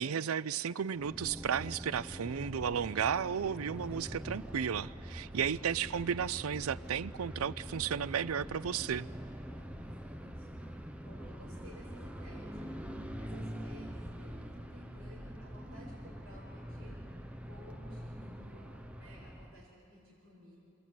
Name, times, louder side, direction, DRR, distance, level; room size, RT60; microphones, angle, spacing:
voice 1, 0.0-9.1, right 7 dB, 90° right, 0.5 m, -34 dB
sound 1, 0.9-19.7, equal, 5° right, 0.8 m, -44 dB
voice 2, 5.0-5.8 9.3-17.0 17.4-18.7 19.0-20.6, equal, 55° right, 6.7 m, -56 dB
27.0 x 20.5 x 9.4 m
head